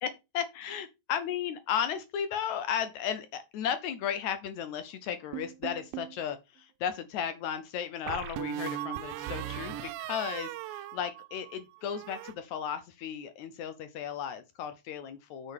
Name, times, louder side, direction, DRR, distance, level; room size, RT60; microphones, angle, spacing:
voice 1, 0.0-15.5, left 8 dB, 75° left, 1.8 m, -35 dB
sound 1, 5.3-6.2 8.1-11.6 11.9-12.3, right 11 dB, 85° right, 2.4 m, -38 dB
6.5 x 6.2 x 4.9 m
omnidirectional pair, 4.0 m